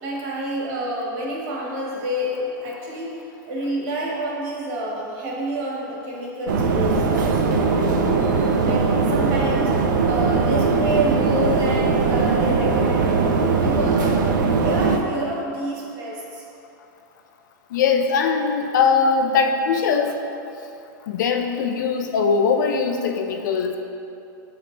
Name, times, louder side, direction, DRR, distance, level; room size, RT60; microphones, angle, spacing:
voice 1, 0.0-8.2 8.6-9.7 10.0-16.4, right 1 dB, 35° right, -4 dB, 1.3 m, -28 dB
sound 1, 6.5-15.0, right 4 dB, 70° right, 0.6 m, -20 dB
voice 2, 17.7-20.2 21.1-23.8, left 5 dB, 65° left, 5 dB, 0.5 m, -21 dB
7.2 x 5.1 x 3.2 m, 2.7 s
supercardioid pair, 170°, 11 cm